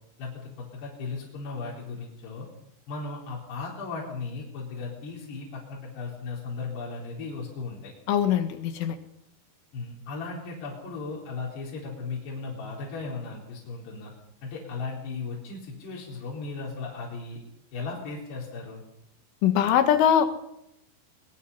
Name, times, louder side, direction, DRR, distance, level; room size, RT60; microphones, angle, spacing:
voice 1, 0.2-2.5 2.9-7.9 9.7-14.1 14.4-17.4 17.7-18.8, left 4 dB, 60° left, -4 dB, 6.1 m, -36 dB
voice 2, 8.1-9.0 19.4-20.3, left 9 dB, 80° left, 8 dB, 4.1 m, -22 dB
22.5 x 22.0 x 5.6 m, 0.79 s
omnidirectional pair, 5.5 m